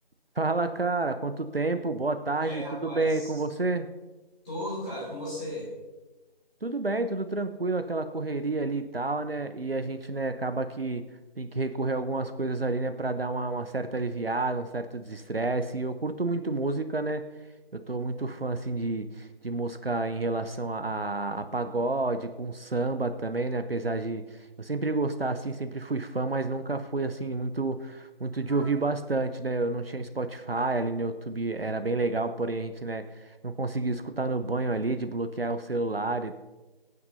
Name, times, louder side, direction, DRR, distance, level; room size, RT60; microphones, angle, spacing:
voice 1, 0.4-3.9 6.6-11.0 11.4-17.2 17.7-36.4, right 3 dB, 70° right, 9 dB, 0.9 m, -30 dB
voice 2, 2.4-3.3 4.4-5.7 28.5-28.7, left 1 dB, 10° left, -10 dB, 2.7 m, -36 dB
21.5 x 9.4 x 2.7 m, 1.1 s
figure-of-eight pair, 165°, 30 cm